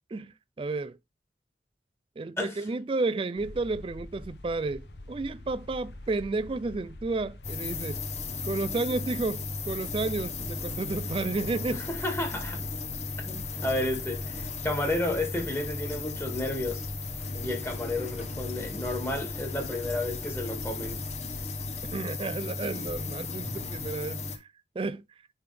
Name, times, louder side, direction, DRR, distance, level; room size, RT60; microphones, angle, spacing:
voice 1, 0.1-1.0 2.2-8.0 8.4-11.9 13.3-13.4 21.9-24.2 24.8-25.0, right 3 dB, 30° right, 0.3 m, -32 dB
sound 1, 3.4-21.9, left 1 dB, 70° left, 1.1 m, -45 dB
sound 2, 7.4-24.4, left 3 dB, 40° left, 1.0 m, -36 dB
voice 2, 11.7-12.6 13.2-16.8 17.4-21.0, left 1 dB, 15° left, 1.9 m, -32 dB
10.0 x 3.4 x 3.4 m
head